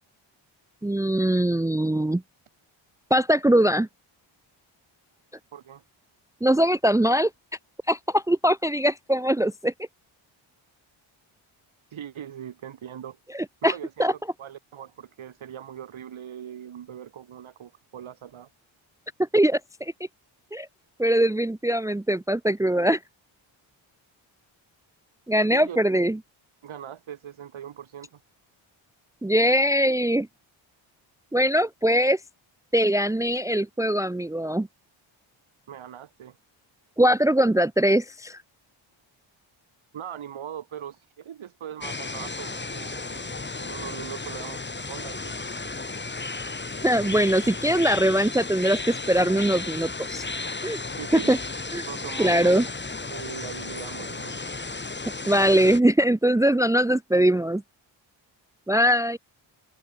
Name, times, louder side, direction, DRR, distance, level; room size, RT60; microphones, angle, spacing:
voice 1, 0.8-2.2 3.1-3.9 6.4-7.3 7.9-9.7 13.6-13.7 14.0-14.1 19.3-19.9 20.5-20.7 21.0-23.0 25.3-26.2 29.2-30.3 31.3-32.2 32.7-34.7 37.0-38.4 46.8-50.2 50.6-50.8 51.3-51.4 51.7-51.8 52.2-52.6 55.3-57.6 58.7-59.2, right 1 dB, 5° right, 0.7 m, -21 dB
voice 2, 5.5-5.8 11.9-13.2 13.6-18.5 25.5-25.8 26.6-28.2 35.7-36.4 39.9-45.4 45.6-45.7 51.0-51.3 51.9-52.7 53.1-54.4, right 9 dB, 70° right, 7.4 m, -40 dB
sound 1, 41.8-55.8, left 3 dB, 20° left, 5.2 m, -34 dB
cardioid pair, 105°, 49 cm